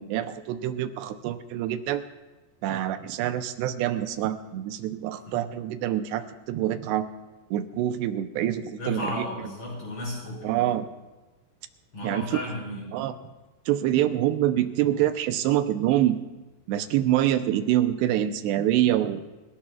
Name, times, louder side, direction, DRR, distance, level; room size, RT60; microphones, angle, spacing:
voice 1, 0.0-2.0 2.6-7.1 7.5-9.2 10.4-10.9 12.0-12.2 12.9-13.2 13.7-16.2 16.7-19.2, right 12 dB, 85° right, 9 dB, 2.9 m, -26 dB
voice 2, 8.8-10.7 11.9-12.9, left 1 dB, 30° left, -4 dB, 6.8 m, -34 dB
28.5 x 17.5 x 2.4 m, 1.1 s
omnidirectional pair, 4.8 m